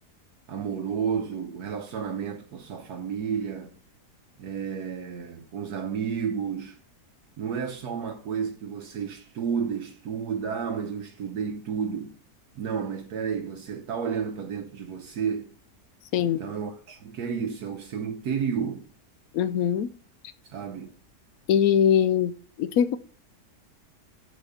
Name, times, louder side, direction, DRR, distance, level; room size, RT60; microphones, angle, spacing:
voice 1, 0.5-3.7 4.4-6.8 7.4-12.1 12.6-15.5 16.2-18.9 20.5-20.9, right 7 dB, 70° right, 1.3 m, -31 dB
voice 2, 19.3-19.9 21.5-22.3 22.6-23.0, left 9 dB, 70° left, 1.0 m, -22 dB
7.2 x 4.4 x 6.6 m
omnidirectional pair, 1.8 m